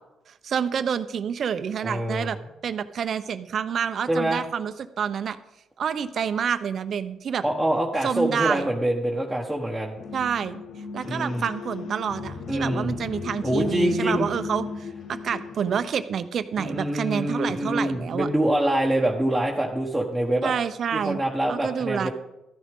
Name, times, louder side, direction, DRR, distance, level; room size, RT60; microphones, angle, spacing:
voice 1, 0.3-2.4 2.6-5.4 5.8-7.4 8.0-8.7 10.1-10.6 10.9-18.3 20.4-21.2 21.5-22.1, right 7 dB, 60° right, 11 dB, 0.8 m, -28 dB
voice 2, 1.8-2.4 4.1-4.4 7.4-10.0 11.0-11.4 12.5-12.9 13.4-14.3 16.6-20.5 20.9-22.1, right 1 dB, 5° right, -3 dB, 1.5 m, -25 dB
sound 1, 10.0-15.9, left 5 dB, 70° left, 0.8 m, -36 dB
13.5 x 10.5 x 3.7 m, 0.95 s
cardioid pair, 90°, 0 cm